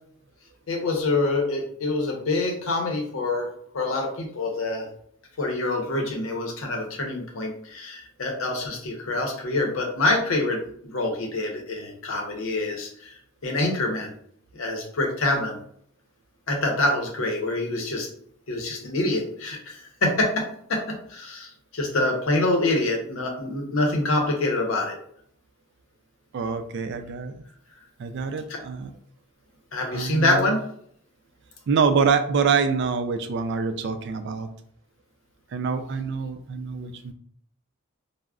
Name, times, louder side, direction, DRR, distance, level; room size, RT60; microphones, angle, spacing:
voice 1, 0.7-3.5 3.7-4.9 5.4-10.6 10.9-14.1 14.5-15.6 16.5-18.1 18.5-20.4 20.7-25.0 28.5-28.6 29.7-30.6, left 2 dB, 75° left, 2 dB, 0.7 m, -26 dB
voice 2, 26.3-27.3 28.0-28.9 29.9-30.5 31.7-34.5 35.5-37.1, right 5 dB, 55° right, 8 dB, 0.3 m, -25 dB
2.3 x 2.0 x 3.5 m, 0.65 s
head